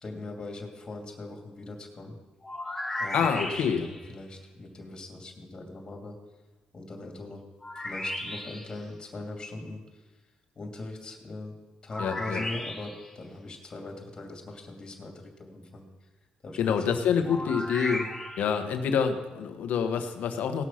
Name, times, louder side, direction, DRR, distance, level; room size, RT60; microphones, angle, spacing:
voice 1, 0.0-2.1 3.0-6.1 6.7-7.4 7.7-9.8 10.6-11.5 11.8-15.1 15.4-15.8 16.4-16.9 17.2-17.6, left 2 dB, 30° left, 2 dB, 2.6 m, -41 dB
sound 1, 2.4-4.1 7.6-8.8 11.9-13.1 17.2-18.6, left 1 dB, 10° left, 1.8 m, -35 dB
voice 2, 3.1-3.9 12.0-12.4 16.6-18.1 18.4-20.7, left 7 dB, 75° left, 7 dB, 1.2 m, -27 dB
17.5 x 6.4 x 5.8 m, 1.2 s
cardioid pair, 100°, 3 cm